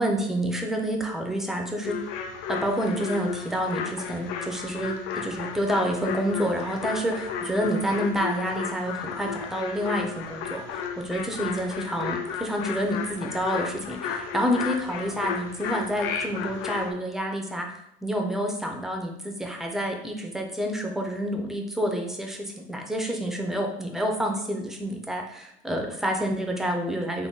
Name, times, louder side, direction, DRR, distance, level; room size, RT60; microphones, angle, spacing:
voice 1, 0.0-2.0 2.5-17.7 18.0-27.3, equal, ahead, 2 dB, 0.3 m, -28 dB
sound 1, 1.8-16.9, left 6 dB, 90° left, 0.5 m, -33 dB
3.6 x 2.1 x 3.7 m, 0.75 s
cardioid pair, 165°, 17 cm